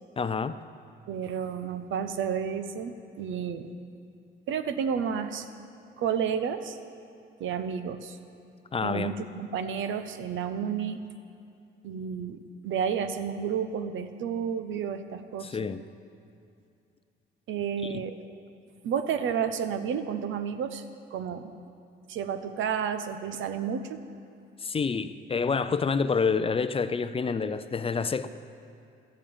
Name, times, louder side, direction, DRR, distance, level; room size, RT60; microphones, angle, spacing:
voice 1, 0.2-0.6 8.7-9.1 15.4-15.8 24.6-28.3, left 5 dB, 30° left, 12 dB, 0.5 m, -28 dB
voice 2, 1.1-3.7 4.5-5.5 6.0-6.8 7.4-8.2 8.8-11.0 11.8-15.5 17.5-18.2 18.8-20.8 21.1-21.5 22.1-24.0, right 7 dB, 75° right, 9 dB, 0.8 m, -31 dB
13.0 x 7.5 x 8.8 m, 2.5 s
cardioid pair, 90°, 20 cm